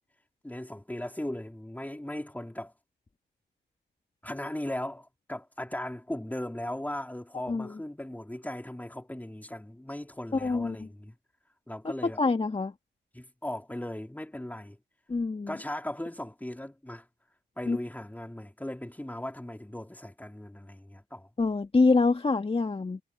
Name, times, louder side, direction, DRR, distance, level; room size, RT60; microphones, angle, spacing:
voice 1, 0.4-2.7 4.2-11.2 11.7-12.2 13.1-14.8 15.5-17.1 17.6-21.3, left 1 dB, 10° left, 3.9 m, -38 dB
voice 2, 10.4-10.8 12.2-12.7 15.1-15.5 17.7-17.8 21.4-23.0, left 3 dB, 30° left, 1.9 m, -25 dB
supercardioid pair, 50°, 19 cm